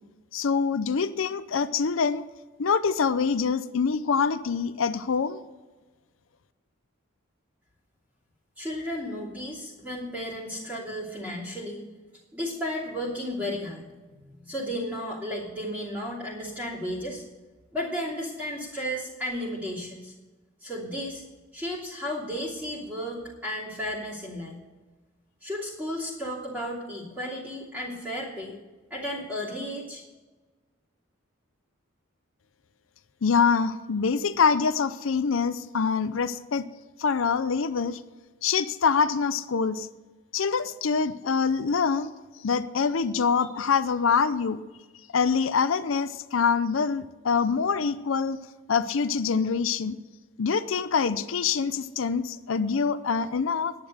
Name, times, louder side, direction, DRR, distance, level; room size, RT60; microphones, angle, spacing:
voice 1, 0.3-2.2 2.6-5.4 33.2-36.6 37.0-38.0 38.4-39.9 40.3-42.1 42.4-44.6 45.1-48.4 48.7-50.0 50.4-53.7, left 5 dB, 70° left, 13 dB, 0.5 m, -25 dB
voice 2, 8.6-11.8 12.3-14.0 14.3-17.2 17.7-20.1 20.6-21.2 21.5-24.6 25.4-28.6 28.9-30.0, equal, 10° right, -9 dB, 3.0 m, -33 dB
10.5 x 10.0 x 6.6 m, 1.3 s
head